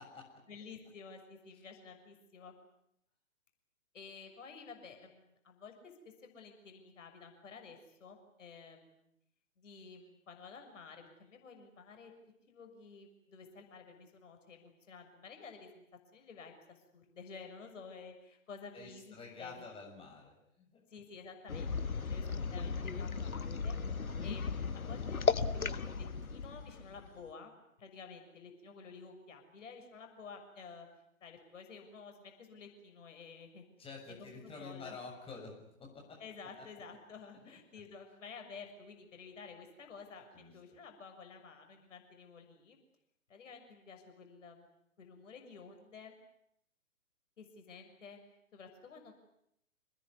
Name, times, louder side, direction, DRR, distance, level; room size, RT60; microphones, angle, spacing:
voice 1, 0.5-2.5 3.9-5.9 6.2-9.1 9.6-12.1 12.5-15.8 16.1-19.6 20.9-21.7 22.0-23.7 24.2-27.5 27.8-30.9 31.2-33.7 34.1-35.0 36.2-42.8 43.3-46.2 47.4-48.2 48.5-49.1, left 5 dB, 60° left, 5 dB, 6.7 m, -52 dB
voice 2, 18.7-20.8 33.8-36.2 36.6-36.7 40.3-40.5, left 4 dB, 15° left, 0 dB, 7.0 m, -49 dB
sound 1, 21.5-27.3, left 5 dB, 80° left, 1.5 m, -36 dB
27.5 x 20.0 x 9.7 m, 0.77 s
figure-of-eight pair, 125°, 42 cm